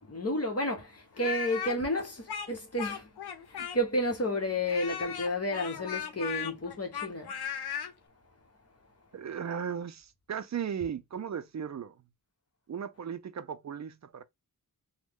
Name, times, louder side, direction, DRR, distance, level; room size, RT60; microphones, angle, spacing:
voice 1, 0.0-3.1 3.5-7.3, left 1 dB, 40° left, 1.0 m, -31 dB
Speech, 1.2-4.1 4.7-7.9, left 7 dB, 85° left, 0.6 m, -37 dB
voice 2, 9.1-11.9 12.7-14.2, right 8 dB, 50° right, 0.4 m, -36 dB
3.1 x 2.1 x 3.5 m
wide cardioid pair, 75°, 37 cm